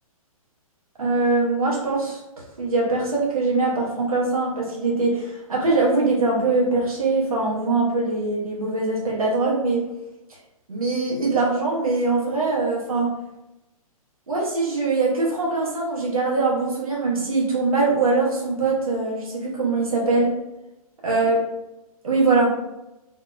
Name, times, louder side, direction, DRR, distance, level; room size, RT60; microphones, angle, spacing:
voice 1, 1.0-2.2 2.6-9.9 10.7-13.2 14.3-20.3 21.0-21.4 22.0-22.6, right 3 dB, 70° right, -3 dB, 0.9 m, -22 dB
2.7 x 2.0 x 2.4 m, 0.95 s
figure-of-eight pair, 120°, 19 cm